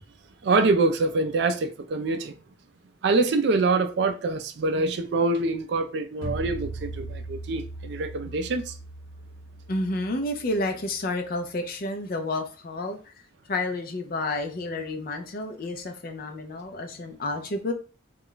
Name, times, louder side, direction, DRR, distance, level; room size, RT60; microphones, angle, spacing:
voice 1, 0.4-2.4 3.0-8.8, right 3 dB, 55° right, 0.3 m, -25 dB
sound 1, 6.2-11.2, right 2 dB, 85° left, 0.9 m, -39 dB
voice 2, 9.7-13.1 13.5-17.7, left 2 dB, 45° left, 0.4 m, -30 dB
2.3 x 2.1 x 3.7 m
head